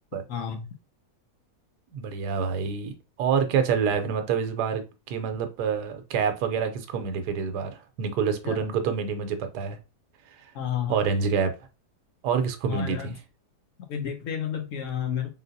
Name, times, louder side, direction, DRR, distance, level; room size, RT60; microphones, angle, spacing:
voice 1, 0.3-0.7 8.4-8.6 10.5-11.0 12.7-13.1 13.9-15.3, left 8 dB, 60° left, 0.9 m, -31 dB
voice 2, 1.9-2.9 3.2-7.7 8.0-9.8 10.9-11.5 12.2-13.2, right 6 dB, 80° right, 1.2 m, -27 dB
3.8 x 3.7 x 2.6 m
omnidirectional pair, 1.8 m